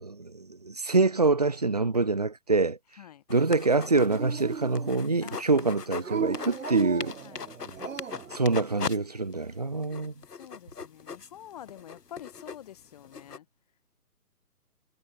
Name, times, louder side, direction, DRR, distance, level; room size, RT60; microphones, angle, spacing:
voice 1, 0.0-2.8 3.3-7.1 8.3-10.1, right 3 dB, 25° right, 0.6 m, -25 dB
sound 1, 3.3-6.1 6.3-9.0 9.3-9.4 9.8-13.4, left 5 dB, 90° left, 1.1 m, -39 dB
Dog, 3.7-5.2 6.0-8.4, right 6 dB, 55° right, 1.9 m, -36 dB
voice 2, 5.2-6.1 7.2-7.5 10.3-13.5, left 11 dB, 25° left, 2.2 m, -47 dB
figure-of-eight pair, 150°, 46 cm